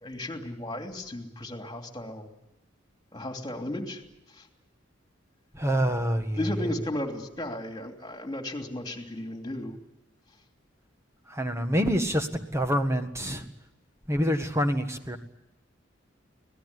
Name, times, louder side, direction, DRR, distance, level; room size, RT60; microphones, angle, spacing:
voice 1, 0.0-2.3 3.1-4.0 4.3-4.5 6.3-9.8, left 1 dB, 20° left, 5 dB, 3.0 m, -35 dB
voice 2, 5.5-6.4 11.3-13.5 14.1-15.2, equal, 15° right, 7 dB, 1.7 m, -26 dB
25.0 x 18.5 x 9.8 m, 0.94 s
head